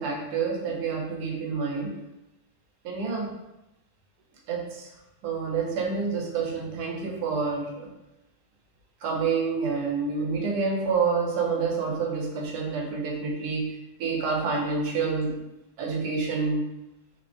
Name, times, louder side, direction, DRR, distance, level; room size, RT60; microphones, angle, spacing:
voice 1, 0.0-2.1 2.8-3.4 4.5-4.9 5.2-7.9 9.0-15.4 15.8-16.7, right 4 dB, 90° right, 0 dB, 1.1 m, -28 dB
2.8 x 2.2 x 2.4 m, 0.93 s
omnidirectional pair, 1.6 m